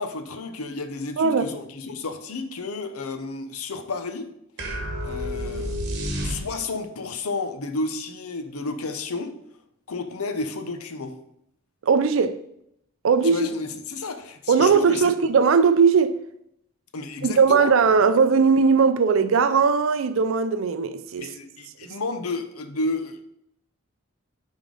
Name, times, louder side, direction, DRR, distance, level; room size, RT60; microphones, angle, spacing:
voice 1, 0.0-4.3 5.0-5.8 6.2-9.3 9.9-11.2 13.2-15.1 16.9-17.7 21.2-23.2, left 3 dB, 85° left, 0.8 m, -31 dB
voice 2, 1.2-1.5 11.8-12.4 13.0-13.5 14.5-16.1 17.2-21.3, right 5 dB, 65° right, 0.4 m, -19 dB
sound 1, 4.6-6.9, equal, 50° right, 1.2 m, -30 dB
9.9 x 3.7 x 3.8 m
head